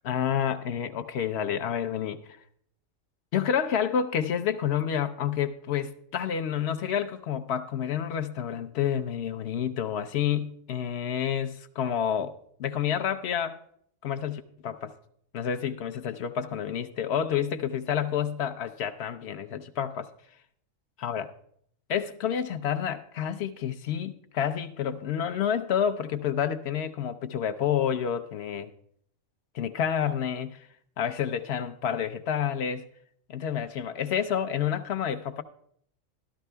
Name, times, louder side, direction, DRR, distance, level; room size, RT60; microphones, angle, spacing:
voice 1, 0.0-2.2 3.3-13.6 14.0-14.9 15.3-20.1 21.0-21.3 21.9-28.7 29.5-30.7 31.0-32.9 33.3-35.4, left 8 dB, 65° left, 0.7 m, -29 dB
13.0 x 12.5 x 2.2 m
omnidirectional pair, 1.4 m